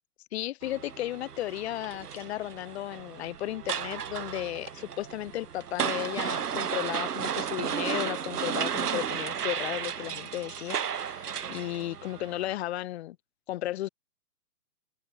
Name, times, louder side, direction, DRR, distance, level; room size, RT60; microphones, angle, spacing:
voice 1, 0.3-13.2 13.5-13.9, left 14 dB, 40° left, 3.0 m, -34 dB
sound 1, 0.6-12.6, right 8 dB, 65° right, 1.8 m, -34 dB
open air
figure-of-eight pair, 130°, 49 cm